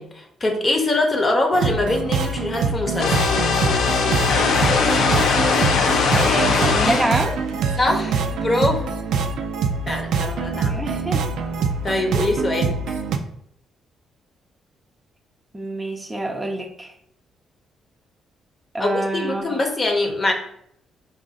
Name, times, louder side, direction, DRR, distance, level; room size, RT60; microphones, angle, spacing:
voice 1, 0.0-3.3 7.8-8.9 9.9-10.9 11.8-13.0 18.8-20.3, left 2 dB, 30° left, 3 dB, 0.8 m, -23 dB
sound 1, 1.5-13.2, right 5 dB, 80° right, 0.4 m, -24 dB
sound 2, 3.0-7.1, left 5 dB, 75° left, 0.6 m, -19 dB
voice 2, 6.1-7.4 10.5-11.3 15.5-16.9 18.7-19.6, right 2 dB, 20° right, 2 dB, 0.6 m, -26 dB
4.9 x 2.5 x 3.9 m, 0.72 s
cardioid pair, 90°, 0 cm